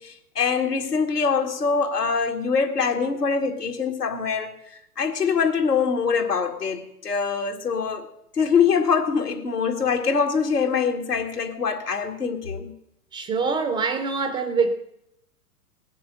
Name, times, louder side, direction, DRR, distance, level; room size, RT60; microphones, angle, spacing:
voice 1, 0.0-8.1 8.3-12.7, left 5 dB, 85° left, 2.2 m, -24 dB
voice 2, 13.1-14.7, right 4 dB, 10° right, 0.5 m, -24 dB
19.0 x 6.9 x 7.8 m
figure-of-eight pair, 110°, 47 cm